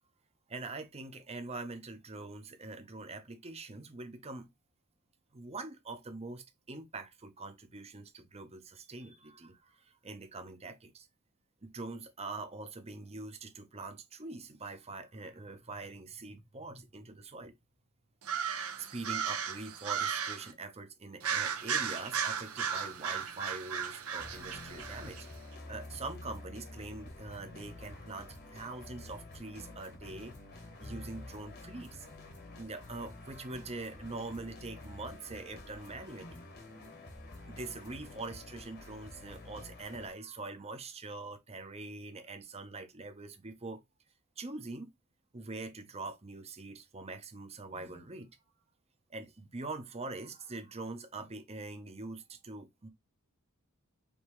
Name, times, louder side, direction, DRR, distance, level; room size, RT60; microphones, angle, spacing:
voice 1, 0.5-4.5 5.3-11.1 11.6-17.5 18.8-25.2 25.7-30.3 30.8-32.1 32.6-36.4 37.5-43.8 44.4-44.9 45.3-48.3 49.1-52.9, right 3 dB, 30° right, 0.8 m, -44 dB
sound 1, 18.2-20.5 21.2-25.2, right 7 dB, 75° right, 1.0 m, -35 dB
sound 2, 24.2-40.1, left 2 dB, 50° left, 1.4 m, -49 dB
5.2 x 2.9 x 3.0 m
head